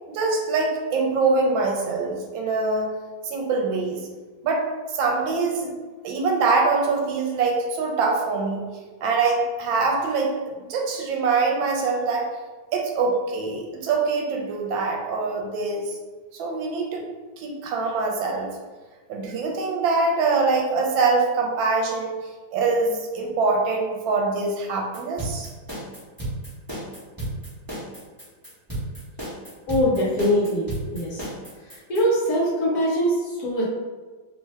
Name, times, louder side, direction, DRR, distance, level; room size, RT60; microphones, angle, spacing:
voice 1, 0.1-2.9 3.2-4.1 4.4-4.6 4.9-5.7 6.0-8.6 9.0-10.3 10.7-12.3 12.7-16.0 16.3-17.1 17.4-18.5 19.1-22.1 22.5-25.5, right 4 dB, 80° right, 0 dB, 1.3 m, -24 dB
sound 1, 24.9-32.0, right 1 dB, 15° right, 0.7 m, -33 dB
voice 2, 29.7-31.2 31.6-33.6, equal, 60° left, -6 dB, 1.1 m, -23 dB
3.2 x 2.1 x 3.3 m, 1.4 s
omnidirectional pair, 2.1 m